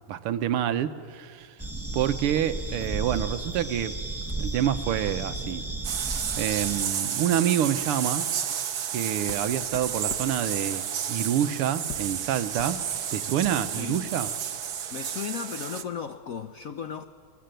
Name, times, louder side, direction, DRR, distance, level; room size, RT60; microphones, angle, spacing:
voice 1, 0.1-1.5 1.9-3.9 4.4-5.6 6.4-8.3 8.9-12.8 13.1-14.3, right 10 dB, 85° right, 11 dB, 1.8 m, -27 dB
sound 1, 1.6-6.8, right 2 dB, 20° right, 0.3 m, -34 dB
sound 2, 2.3-3.8 4.0-4.6 5.1-5.3 5.6-5.9 6.8-6.9 7.2-7.4 7.9-13.8, left 5 dB, 55° left, 1.9 m, -47 dB
sound 3, 5.8-15.8, right 8 dB, 55° right, 1.3 m, -31 dB
voice 2, 13.8-14.1 14.9-17.0, left 7 dB, 75° left, 9 dB, 0.7 m, -35 dB
23.0 x 20.0 x 9.1 m, 2.1 s
omnidirectional pair, 2.4 m